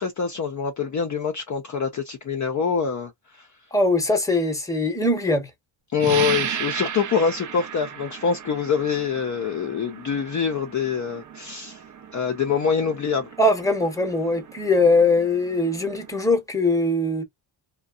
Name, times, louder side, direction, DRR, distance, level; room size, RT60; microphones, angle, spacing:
voice 1, 0.0-3.5 5.9-11.8 12.1-13.3, left 6 dB, 40° left, 0.5 m, -25 dB
voice 2, 3.7-5.5 13.4-17.2, left 2 dB, 5° left, 0.8 m, -21 dB
sound 1, 6.0-16.3, right 9 dB, 40° right, 0.5 m, -35 dB
2.6 x 2.2 x 2.4 m
cardioid pair, 115°, 50 cm